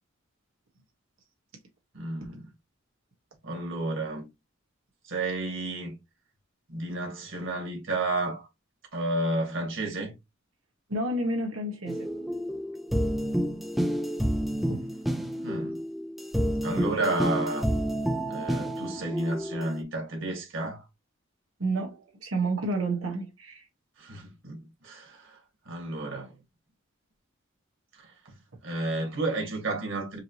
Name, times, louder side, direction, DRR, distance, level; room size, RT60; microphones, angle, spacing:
voice 1, 1.9-2.5 3.4-4.3 5.0-6.0 6.7-8.5 8.9-10.1 15.4-15.8 16.6-17.7 18.3-20.8 24.0-25.4 25.7-26.4 28.0-28.1 28.6-30.2, right 2 dB, 65° right, 2.0 m, -31 dB
voice 2, 10.9-12.1 14.7-14.8 21.6-23.6, right 2 dB, 90° right, 1.6 m, -30 dB
sound 1, 11.9-19.8, equal, ahead, 0.5 m, -29 dB
4.9 x 3.0 x 3.0 m
head